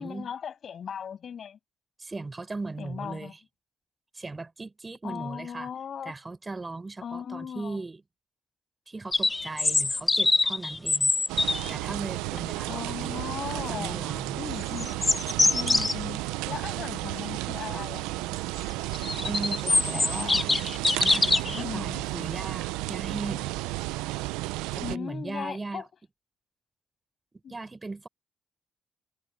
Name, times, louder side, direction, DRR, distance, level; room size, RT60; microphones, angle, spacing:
voice 1, 0.0-1.6 2.8-3.3 5.0-6.1 7.0-7.8 12.7-14.1 14.4-15.0 15.5-16.2 16.5-18.4 19.9-20.5 21.5-22.0 24.8-25.9 27.4-27.5, left 7 dB, 60° left, 6.9 m, -38 dB
voice 2, 2.0-3.4 4.1-5.7 6.1-8.0 8.9-11.1 11.7-14.4 19.2-20.5 21.0-23.5 24.7-25.9 27.5-28.1, right 3 dB, 30° right, 5.2 m, -38 dB
sound 1, 9.1-11.7 14.6-15.9 18.7-21.6, left 3 dB, 25° left, 0.9 m, -24 dB
sound 2, 11.3-25.0, right 20 dB, 90° right, 0.5 m, -33 dB
supercardioid pair, 50°, 0 cm